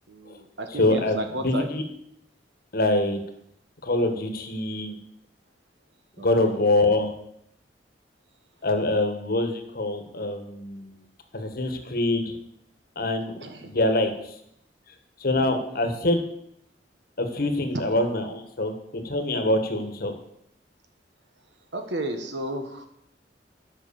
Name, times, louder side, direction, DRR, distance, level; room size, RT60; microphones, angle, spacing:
voice 1, 0.1-1.7 6.2-6.6 13.4-13.7 21.7-22.9, right 1 dB, 70° right, 6 dB, 1.3 m, -33 dB
voice 2, 0.7-1.8 2.7-3.2 3.8-5.0 6.2-7.1 8.6-10.9 11.3-12.3 13.0-13.3 13.6-14.1 15.2-16.2 17.2-18.7 19.0-20.1, left 2 dB, 60° left, 6 dB, 1.4 m, -24 dB
9.6 x 6.0 x 6.9 m, 0.75 s
head